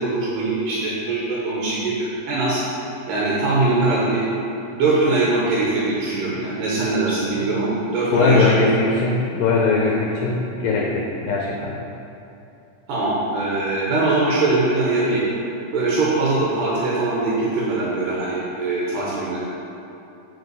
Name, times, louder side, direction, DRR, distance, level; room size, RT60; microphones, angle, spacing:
voice 1, 0.0-2.6 3.1-4.2 4.7-8.5 12.9-15.3 15.7-19.4, right 2 dB, 85° right, -6 dB, 2.5 m, -22 dB
voice 2, 8.1-11.8, left 3 dB, 90° left, -2 dB, 2.4 m, -20 dB
5.6 x 5.3 x 4.6 m, 2.8 s
omnidirectional pair, 3.8 m